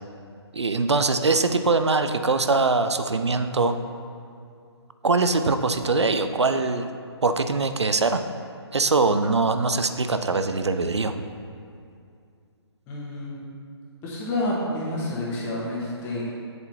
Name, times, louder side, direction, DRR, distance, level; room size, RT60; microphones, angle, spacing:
voice 1, 0.5-3.8 5.0-6.9 7.2-8.2 8.7-11.1, right 3 dB, 75° right, 9 dB, 0.5 m, -22 dB
voice 2, 12.9-13.4 14.0-16.2, left 1 dB, 15° left, -5 dB, 1.3 m, -29 dB
7.8 x 7.5 x 2.9 m, 2.4 s
figure-of-eight pair, 135°, 14 cm